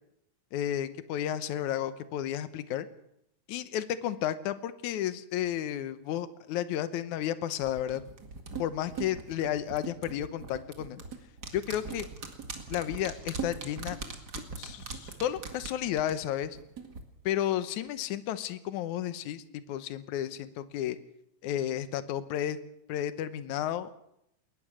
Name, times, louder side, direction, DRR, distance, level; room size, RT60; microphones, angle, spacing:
voice 1, 0.5-2.9 3.5-8.0 8.6-11.0 11.5-12.1 12.7-14.0 14.5-16.6 17.2-21.0 21.4-22.6 22.9-23.9, left 11 dB, 75° left, 12 dB, 2.3 m, -32 dB
sound 1, 7.6-17.0 17.3-17.4, right 5 dB, 35° right, 2.2 m, -41 dB
21.0 x 20.0 x 6.3 m, 0.80 s
omnidirectional pair, 3.6 m